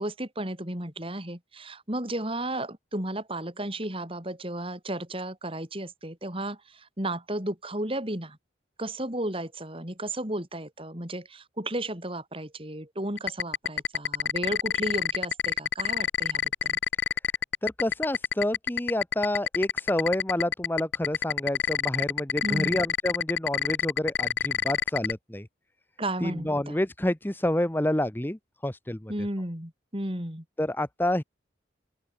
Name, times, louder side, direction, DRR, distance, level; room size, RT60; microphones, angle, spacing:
voice 1, 0.0-8.4 8.8-16.8 22.4-22.8 26.0-26.8 29.1-30.4, right 1 dB, 30° right, 5.0 m, -33 dB
sound 1, 13.2-25.1, left 8 dB, 65° left, 0.7 m, -26 dB
voice 2, 17.6-25.5 26.2-29.1 30.6-31.2, left 1 dB, 10° left, 0.8 m, -28 dB
open air
head